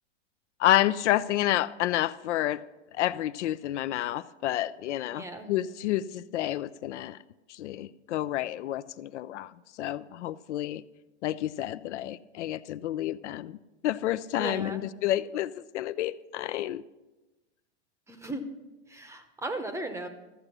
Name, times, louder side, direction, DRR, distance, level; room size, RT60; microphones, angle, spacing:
voice 1, 0.6-2.6 2.9-7.2 7.5-10.8 11.2-13.6 13.8-16.8, left 13 dB, 80° left, 15 dB, 0.5 m, -29 dB
voice 2, 5.1-5.5 14.4-14.8 18.1-18.5 18.9-20.1, right 2 dB, 10° right, 9 dB, 0.7 m, -36 dB
13.5 x 6.6 x 6.1 m, 1.1 s
hypercardioid pair, 135°, 35 cm